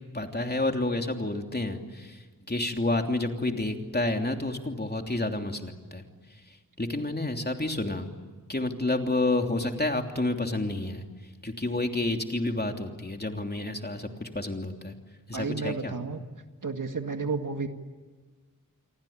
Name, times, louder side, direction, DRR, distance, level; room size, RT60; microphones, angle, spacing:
voice 1, 0.1-6.0 6.8-8.1 8.5-11.1 11.4-15.0 15.3-15.9, left 2 dB, 30° left, 4 dB, 3.1 m, -29 dB
voice 2, 15.3-16.2 16.6-17.7, right 4 dB, 70° right, 6 dB, 2.1 m, -31 dB
28.0 x 24.0 x 8.8 m, 1.4 s
wide cardioid pair, 65°, 33 cm